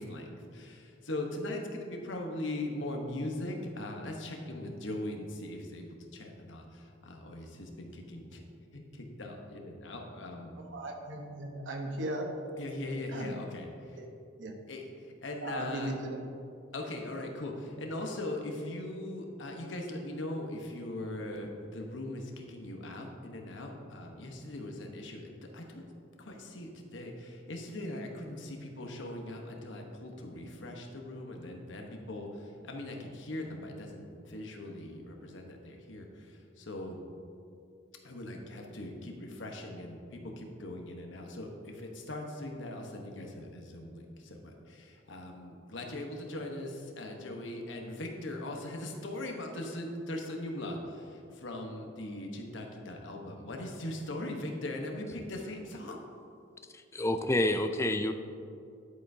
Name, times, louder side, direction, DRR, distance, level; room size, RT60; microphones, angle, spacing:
voice 1, 0.0-8.4 8.7-10.5 12.6-14.0 14.7-15.9 16.7-25.8 26.2-37.0 38.0-56.0, left 1 dB, 75° left, 2 dB, 1.1 m, -40 dB
voice 2, 10.6-12.3 13.1-13.3 14.0-14.1 14.4-14.5 15.4-16.3, right 1 dB, 70° right, 2 dB, 1.0 m, -37 dB
voice 3, 56.7-58.1, left 1 dB, 15° left, 8 dB, 0.3 m, -28 dB
10.5 x 8.2 x 2.7 m, 2.5 s
head